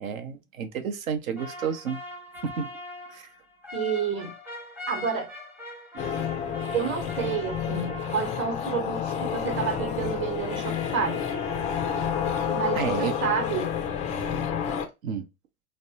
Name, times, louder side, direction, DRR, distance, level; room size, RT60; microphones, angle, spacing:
voice 1, 0.0-2.0 2.4-2.7 3.1-3.2 12.7-13.2 15.0-15.3, right 7 dB, 65° right, 0.8 m, -30 dB
sound 1, 1.4-8.9 9.3-13.4, left 2 dB, 5° right, 0.7 m, -42 dB
voice 2, 3.7-4.3 4.9-5.3 6.7-11.2 12.5-13.7, right 6 dB, 25° right, 1.0 m, -29 dB
sound 2, 6.0-14.9, left 8 dB, 20° left, 0.3 m, -30 dB
3.3 x 2.1 x 2.8 m
figure-of-eight pair, 80°, 43 cm